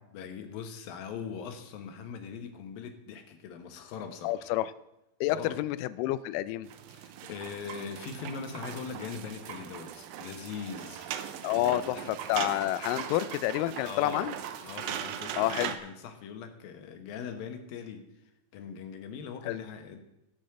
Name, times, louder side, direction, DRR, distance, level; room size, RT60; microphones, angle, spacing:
voice 1, 0.1-4.5 5.3-5.6 6.9-11.2 11.5-12.1 13.8-14.4 14.6-18.0 18.5-20.0, left 6 dB, 70° left, 7 dB, 2.9 m, -41 dB
voice 2, 4.2-4.7 5.2-6.7 11.4-14.4 15.4-15.8 19.5-19.6, left 14 dB, 90° left, 15 dB, 1.9 m, -29 dB
sound 1, 6.7-15.8, right 9 dB, 80° right, 2.5 m, -39 dB
15.5 x 6.5 x 7.7 m, 0.91 s
omnidirectional pair, 4.4 m